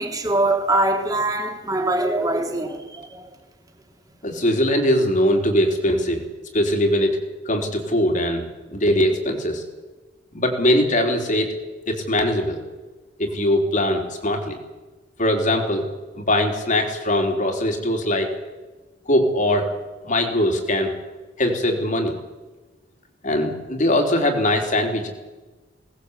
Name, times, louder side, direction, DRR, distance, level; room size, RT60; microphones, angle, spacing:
voice 1, 0.0-3.3, right 2 dB, 20° right, 3.2 m, -23 dB
voice 2, 4.2-6.2 6.5-7.2 7.5-9.6 10.3-11.5 11.9-12.6 13.2-14.6 15.2-15.8 16.1-18.3 19.1-19.7 20.0-20.9 21.4-22.1 23.2-25.1, left 1 dB, 45° left, 3.8 m, -21 dB
22.5 x 18.5 x 8.3 m
head